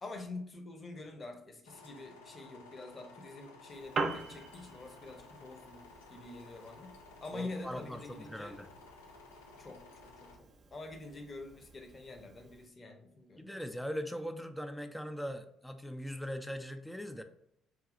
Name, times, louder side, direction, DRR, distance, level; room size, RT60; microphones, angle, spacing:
voice 1, 0.0-5.8 6.1-6.9 7.2-8.6 9.6-13.6, left 2 dB, 35° left, 4 dB, 0.8 m, -46 dB
sound 1, 1.6-10.4, left 3 dB, 80° left, 0.4 m, -55 dB
Piano, 3.7-12.7, right 4 dB, 45° right, 0.5 m, -44 dB
voice 2, 7.3-8.7 13.4-17.2, equal, 5° left, 7 dB, 0.4 m, -40 dB
5.0 x 2.7 x 2.5 m, 0.73 s
figure-of-eight pair, 50°, 0 cm